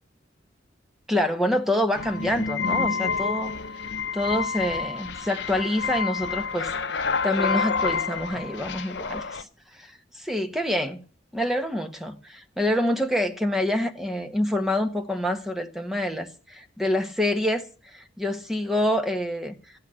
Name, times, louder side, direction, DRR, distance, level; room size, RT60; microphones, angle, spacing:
voice 1, 1.1-3.5 4.1-11.0 11.3-19.5, left 1 dB, ahead, 1.6 m, -27 dB
sound 1, 2.0-9.4, left 5 dB, 65° left, 0.8 m, -28 dB
15.0 x 11.5 x 6.5 m
head